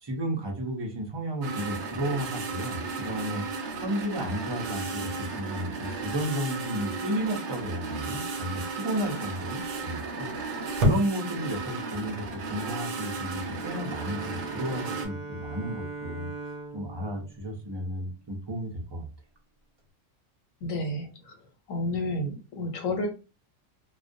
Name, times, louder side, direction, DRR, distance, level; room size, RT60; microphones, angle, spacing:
voice 1, 0.0-3.4 3.8-10.3 10.8-16.3 16.7-19.1, equal, 45° right, 1 dB, 0.3 m, -33 dB
sound 1, 1.4-15.1, right 2 dB, 70° right, 0.8 m, -33 dB
Bowed string instrument, 13.5-18.4, right 3 dB, 30° right, 0.8 m, -41 dB
voice 2, 20.6-21.4 21.7-23.1, left 1 dB, 80° left, 4 dB, 1.1 m, -31 dB
2.4 x 2.1 x 2.5 m, 0.31 s
omnidirectional pair, 1.4 m